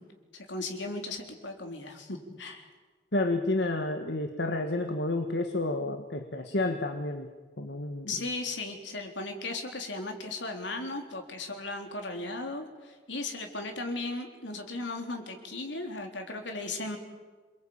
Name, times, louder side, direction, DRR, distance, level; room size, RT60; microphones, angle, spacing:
voice 1, 0.3-2.7 8.1-17.0, left 2 dB, 85° left, 3 dB, 3.9 m, -36 dB
voice 2, 3.1-7.3 7.6-8.3, left 2 dB, 70° left, 5 dB, 1.7 m, -30 dB
28.0 x 21.5 x 8.9 m, 1.4 s
head